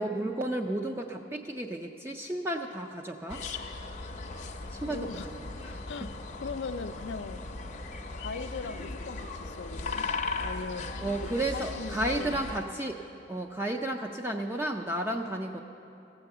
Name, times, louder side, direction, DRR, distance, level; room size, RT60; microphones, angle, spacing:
voice 1, 0.0-3.4 4.7-5.2 5.7-5.8 11.0-13.0 13.3-15.6, right 1 dB, 15° right, 2 dB, 0.4 m, -32 dB
sound 1, 3.3-12.6, left 3 dB, 40° left, 0.6 m, -37 dB
voice 2, 4.9-5.3 5.9-7.4 8.1-10.1 10.4-10.9 11.2-12.4, left 4 dB, 90° left, 10 dB, 0.5 m, -39 dB
15.5 x 7.0 x 6.7 m, 2.8 s
head